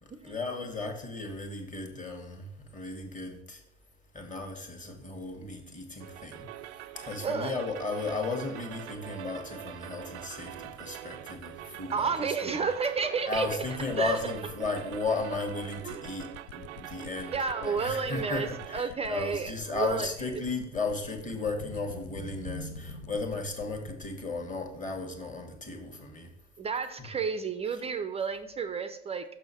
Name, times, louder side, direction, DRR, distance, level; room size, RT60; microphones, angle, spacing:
voice 1, 0.0-3.6 4.1-6.5 6.9-12.7 13.3-26.3, left 3 dB, 20° left, 3 dB, 1.4 m, -35 dB
sound 1, 6.0-18.8, right 13 dB, 70° right, 0.5 m, -44 dB
Thunder, 6.2-25.6, right 1 dB, 85° left, 2.9 m, -51 dB
voice 2, 7.2-7.5 11.9-13.5 14.0-14.2 15.8-16.3 17.3-20.1 26.6-29.2, right 5 dB, 20° right, 10 dB, 0.4 m, -31 dB
sound 2, 13.2-24.1, left 11 dB, 65° left, 0.5 m, -47 dB
6.2 x 6.1 x 4.3 m, 0.77 s
hypercardioid pair, 85°, 36 cm